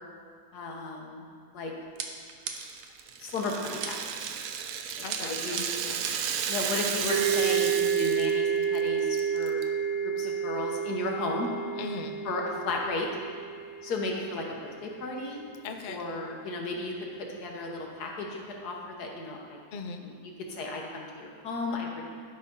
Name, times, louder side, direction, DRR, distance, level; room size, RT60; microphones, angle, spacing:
voice 1, 0.5-1.2 1.5-1.7 3.2-4.3 5.0-5.6 6.5-9.6 10.0-11.5 12.2-13.1 13.8-15.4 15.9-19.6 20.0-20.1 20.5-22.0, left 2 dB, 90° left, 0 dB, 1.7 m, -34 dB
sound 1, 2.0-2.9 3.8-4.3 5.1-6.4, right 6 dB, 85° right, 1.2 m, -38 dB
Rattle (instrument), 2.5-8.4 8.6-8.8 9.2-9.6, right 8 dB, 70° right, 0.9 m, -33 dB
voice 2, 5.0-6.1 11.8-12.1 15.6-16.0 19.7-20.0, left 4 dB, 60° left, 4 dB, 0.5 m, -39 dB
sound 2, 7.1-14.6, right 7 dB, 45° right, 1.4 m, -30 dB
11.5 x 3.9 x 5.4 m, 2.2 s
omnidirectional pair, 1.6 m